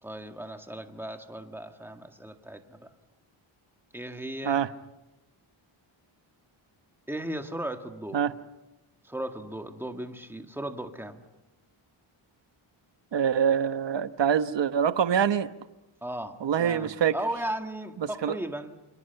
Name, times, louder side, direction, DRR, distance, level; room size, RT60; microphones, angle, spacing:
voice 1, 0.0-2.9 3.9-4.6 7.1-8.2 9.0-11.2 16.0-18.7, right 1 dB, 5° right, 5 dB, 1.8 m, -36 dB
voice 2, 13.1-15.5 16.4-17.1 18.0-18.4, right 8 dB, 60° right, 11 dB, 1.1 m, -25 dB
29.0 x 28.0 x 5.9 m, 1.0 s
wide cardioid pair, 165°, 49 cm